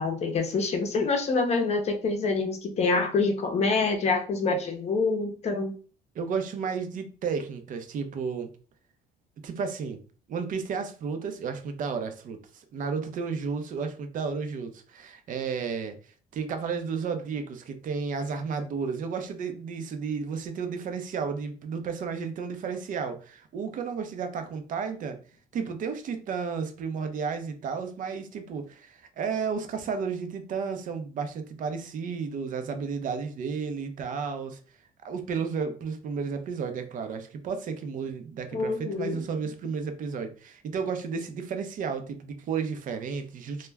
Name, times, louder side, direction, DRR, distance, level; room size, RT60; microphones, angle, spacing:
voice 1, 0.0-5.7 38.5-39.2, left 4 dB, 40° left, 4 dB, 0.6 m, -26 dB
voice 2, 6.1-8.5 9.4-10.0 10.3-15.9 16.3-25.2 25.5-34.6 35.0-43.7, right 5 dB, 50° right, 7 dB, 0.5 m, -32 dB
2.2 x 2.1 x 3.3 m, 0.39 s
cardioid pair, 110°, 17 cm